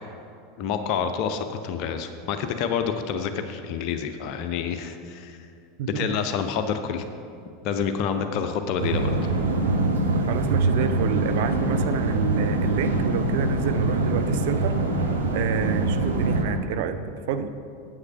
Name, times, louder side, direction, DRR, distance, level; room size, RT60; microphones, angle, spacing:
voice 1, 0.6-5.4 5.9-7.1 7.6-9.2, left 7 dB, 45° left, 8 dB, 0.6 m, -28 dB
voice 2, 5.8-6.2 10.3-14.7 15.3-17.0 17.3-17.5, right 8 dB, 55° right, 9 dB, 0.5 m, -28 dB
sound 1, 8.8-16.4, right 2 dB, 70° right, 1.1 m, -24 dB
9.8 x 7.2 x 5.7 m, 2.5 s
figure-of-eight pair, 80°, 0 cm